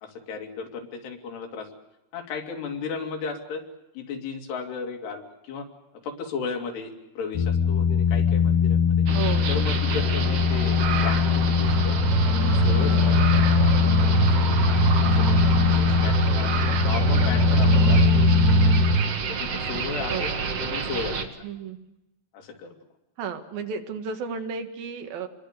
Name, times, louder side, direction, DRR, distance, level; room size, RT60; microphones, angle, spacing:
voice 1, 0.0-1.7 2.1-3.6 3.9-5.7 6.0-9.1 9.5-11.2 11.5-12.0 12.3-14.4 15.0-15.4 15.7-16.5 16.8-18.7 19.3-20.3 20.6-21.4 22.3-22.8, left 5 dB, 80° left, 4 dB, 4.6 m, -35 dB
sound 1, 7.3-19.0, left 7 dB, 65° left, 2.3 m, -22 dB
sound 2, 9.1-21.2, right 5 dB, 50° right, 2.1 m, -30 dB
voice 2, 9.1-9.7 12.8-13.2 20.1-20.4 21.4-21.8 23.2-25.3, right 6 dB, 65° right, 6 dB, 3.3 m, -33 dB
sound 3, 11.6-19.1, right 5 dB, 90° right, 5.7 m, -24 dB
27.5 x 22.0 x 6.6 m, 0.93 s
omnidirectional pair, 4.7 m